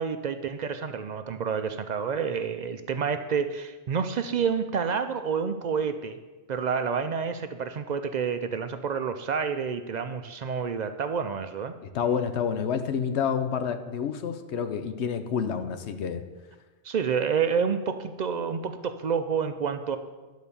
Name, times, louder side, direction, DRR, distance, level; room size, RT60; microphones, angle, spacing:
voice 1, 0.0-6.2 6.5-11.7 16.8-20.0, right 6 dB, 55° right, 9 dB, 0.5 m, -29 dB
voice 2, 11.8-16.2, left 7 dB, 80° left, 9 dB, 0.9 m, -29 dB
10.5 x 4.1 x 6.9 m, 1.3 s
omnidirectional pair, 1.1 m